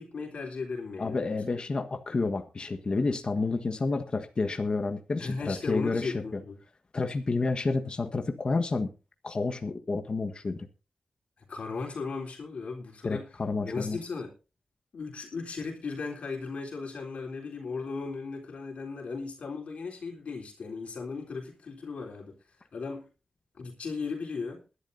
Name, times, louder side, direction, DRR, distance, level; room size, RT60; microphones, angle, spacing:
voice 1, 0.0-1.4 5.2-6.6 11.5-13.3 13.7-14.3 14.9-22.4 22.7-23.0 23.6-24.6, left 4 dB, 70° left, 1 dB, 3.7 m, -36 dB
voice 2, 1.0-6.4 6.9-8.9 9.2-10.7 13.0-14.0, left 3 dB, 45° left, 6 dB, 1.5 m, -30 dB
21.5 x 11.5 x 2.7 m, 0.32 s
wide cardioid pair, 85°, 2 cm